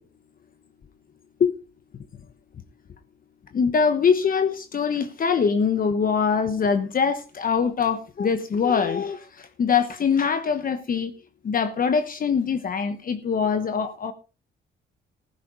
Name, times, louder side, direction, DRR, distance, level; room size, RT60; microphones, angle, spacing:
voice 1, 3.5-11.1 11.4-14.1, left 6 dB, 45° left, 1.1 m, -23 dB
15.0 x 12.0 x 3.9 m
cardioid pair, 90°, 20 cm